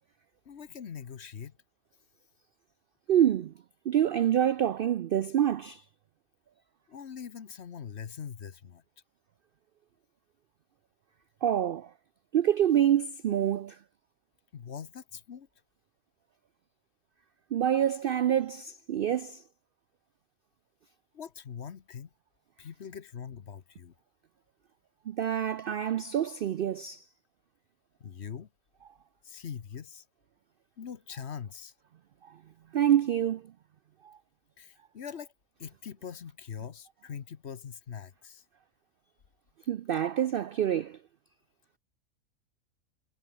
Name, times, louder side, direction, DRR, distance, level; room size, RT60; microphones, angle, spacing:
voice 1, 0.5-1.5 6.9-8.8 14.5-15.5 21.1-22.1 22.6-23.9 28.0-28.5 29.2-30.0 30.8-31.7 34.6-35.3 35.6-38.4, left 7 dB, 50° left, 1.2 m, -42 dB
voice 2, 3.1-3.5 3.9-5.8 11.4-11.9 12.3-13.8 17.5-19.4 25.1-27.0 32.7-33.4 34.0-34.2 39.7-41.0, right 10 dB, 85° right, 0.5 m, -26 dB
omnidirectional pair, 1.5 m